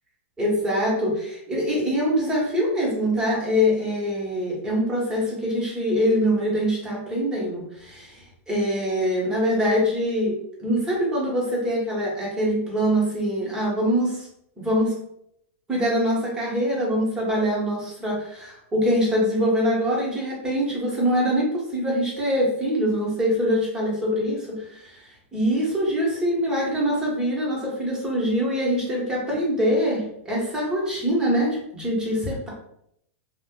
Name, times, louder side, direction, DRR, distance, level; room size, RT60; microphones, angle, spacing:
voice 1, 0.4-14.3 14.6-14.9 15.7-25.0 25.3-32.5, equal, 10° right, -5 dB, 1.0 m, -24 dB
2.4 x 2.1 x 3.6 m, 0.73 s
supercardioid pair, 145°, 8 cm